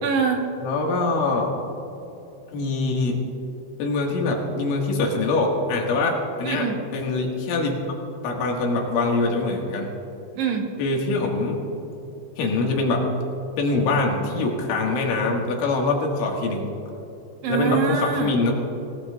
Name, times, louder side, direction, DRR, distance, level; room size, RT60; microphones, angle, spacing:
voice 1, 0.0-0.4 6.4-6.8 10.4-10.7 17.4-18.5, right 6 dB, 70° right, 2 dB, 3.1 m, -24 dB
voice 2, 0.6-1.5 2.5-3.2 3.8-7.8 8.2-9.9 10.8-11.6 12.4-13.1 13.6-16.7 17.5-18.5, left 3 dB, 80° left, 0 dB, 4.3 m, -23 dB
26.5 x 17.5 x 2.5 m, 3.0 s
omnidirectional pair, 5.5 m